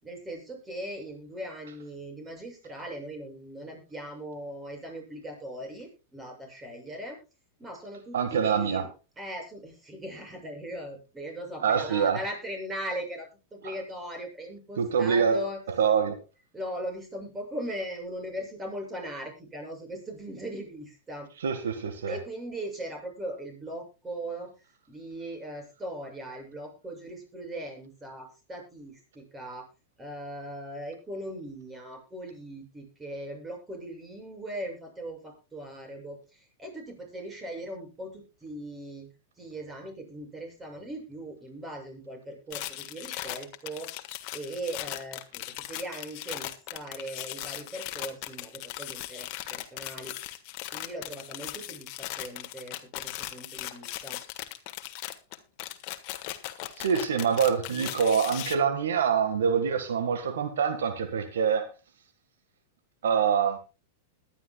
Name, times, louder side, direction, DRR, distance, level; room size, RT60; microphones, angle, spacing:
voice 1, 0.0-7.2 7.6-8.9 9.2-15.6 16.5-21.3 22.1-29.7 30.0-39.1 39.4-43.9 44.3-50.1 50.7-54.2, right 1 dB, 15° right, 7.0 m, -39 dB
voice 2, 8.1-8.8 11.6-12.2 14.8-15.4 15.8-16.2 21.4-22.2 56.8-61.7 63.0-63.6, right 7 dB, 80° right, 1.6 m, -25 dB
sound 1, 42.5-58.6, left 15 dB, 50° left, 1.5 m, -38 dB
21.0 x 11.0 x 2.3 m
hypercardioid pair, 120°, 0 cm